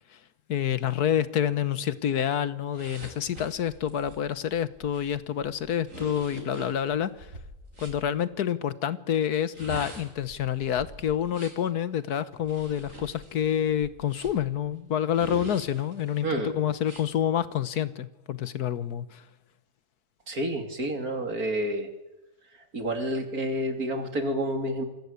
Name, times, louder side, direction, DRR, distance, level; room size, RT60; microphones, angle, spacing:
voice 1, 0.5-7.3 7.8-19.2, left 9 dB, 85° left, 15 dB, 1.6 m, -28 dB
sound 1, 2.7-8.0 9.4-11.7 12.4-14.5 15.1-16.2 16.8-17.0, right 1 dB, 55° right, 5.6 m, -43 dB
voice 2, 20.3-21.9 22.7-24.8, right 1 dB, 70° right, 6 dB, 3.5 m, -29 dB
27.5 x 22.0 x 8.3 m, 1.0 s
omnidirectional pair, 1.6 m